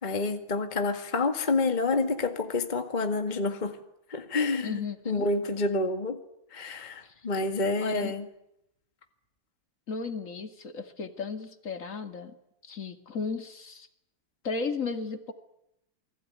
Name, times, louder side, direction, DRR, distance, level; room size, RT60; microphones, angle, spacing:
voice 1, 0.0-3.8 4.1-4.8 5.1-6.2 6.5-8.3, left 3 dB, 20° left, 6 dB, 1.9 m, -28 dB
voice 2, 4.6-5.3 7.8-8.1 9.9-12.4 12.6-13.9 14.4-15.3, left 4 dB, 35° left, 7 dB, 2.5 m, -34 dB
29.0 x 21.0 x 9.7 m, 0.81 s
omnidirectional pair, 2.4 m